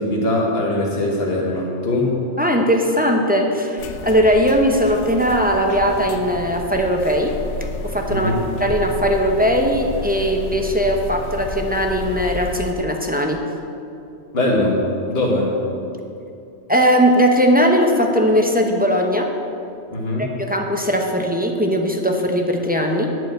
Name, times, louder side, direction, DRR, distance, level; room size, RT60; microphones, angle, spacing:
voice 1, 0.0-2.1 8.1-8.4 14.3-14.8 15.1-15.5 19.9-20.3, left 1 dB, 55° left, -4 dB, 1.8 m, -21 dB
voice 2, 2.4-7.4 7.8-8.3 8.6-13.4 16.7-19.3 20.2-23.1, equal, 10° right, 1 dB, 0.7 m, -19 dB
sound 1, 3.8-12.7, left 3 dB, 85° left, 1.0 m, -31 dB
10.5 x 4.7 x 7.8 m, 2.7 s
omnidirectional pair, 1.2 m